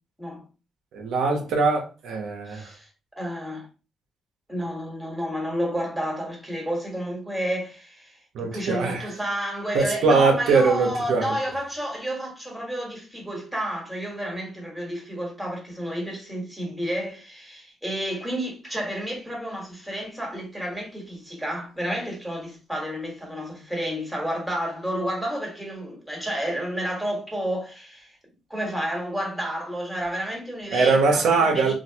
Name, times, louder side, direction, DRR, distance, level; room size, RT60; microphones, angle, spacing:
voice 1, 0.9-2.6 8.3-9.1 9.7-11.3 30.7-31.7, right 4 dB, 80° right, 0.9 m, -21 dB
voice 2, 2.5-2.9 3.2-3.7 4.5-28.1 28.5-31.7, equal, 5° right, 1.5 m, -31 dB
3.1 x 2.5 x 2.8 m
cardioid pair, 90°, 0 cm